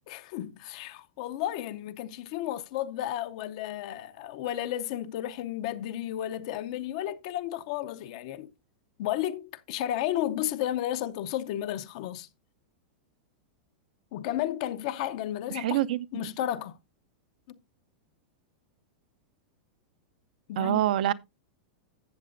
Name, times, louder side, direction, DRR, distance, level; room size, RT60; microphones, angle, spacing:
voice 1, 0.1-8.5 9.0-12.3 14.1-15.8 16.1-16.8 17.5-17.6 20.5-20.8, left 12 dB, 40° left, 0.5 m, -33 dB
voice 2, 15.5-16.3 20.6-21.1, right 12 dB, 60° right, 0.5 m, -26 dB
14.0 x 7.6 x 2.5 m
supercardioid pair, 175°, 5 cm